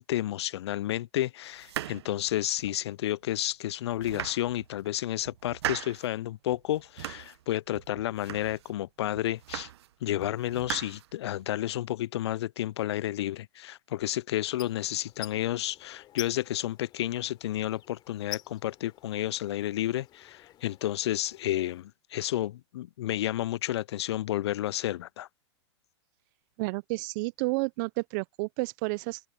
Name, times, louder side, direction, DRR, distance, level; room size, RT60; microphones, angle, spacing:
voice 1, 0.0-9.7 10.0-25.3, left 13 dB, 70° left, 0.4 m, -31 dB
sound 1, 1.6-2.9 3.4-3.5 3.9-4.9 5.2-6.1 6.5-7.4 7.7-8.8 9.1-9.9 10.2-11.5, right 13 dB, 65° right, 1.0 m, -39 dB
sound 2, 14.5-21.8, left 13 dB, 30° left, 3.3 m, -47 dB
voice 2, 26.6-29.2, right 27 dB, 45° right, 0.6 m, -31 dB
hypercardioid pair, 120°, 15 cm